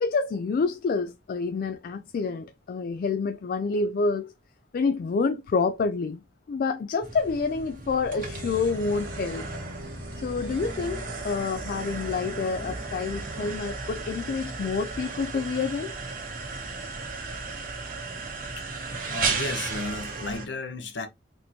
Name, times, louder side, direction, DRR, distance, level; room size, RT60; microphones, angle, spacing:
voice 1, 0.0-4.3 4.7-6.2 6.5-9.5 9.8-16.0, left 4 dB, 50° left, 0.3 m, -28 dB
sound 1, 7.0-20.5, right 4 dB, 50° right, 1.2 m, -35 dB
Organ, 8.2-13.6, equal, 85° right, 1.5 m, -40 dB
voice 2, 19.1-21.1, left 3 dB, 65° left, 0.8 m, -34 dB
4.1 x 3.0 x 2.6 m
head